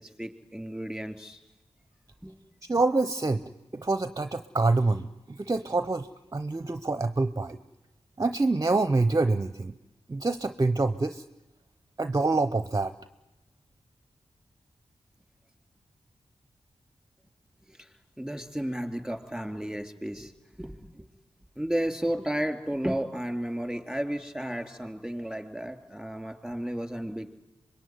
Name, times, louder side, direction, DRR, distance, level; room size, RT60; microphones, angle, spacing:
voice 1, 0.0-1.4 2.2-2.4 17.7-21.1 21.6-27.3, right 1 dB, ahead, 6 dB, 3.5 m, -33 dB
voice 2, 2.7-3.4 3.7-5.1 5.4-6.1 6.3-7.6 8.2-9.7 10.1-11.2 12.0-12.9, right 3 dB, 30° right, 11 dB, 0.8 m, -26 dB
25.5 x 22.0 x 9.6 m, 0.98 s
cardioid pair, 50°, 11 cm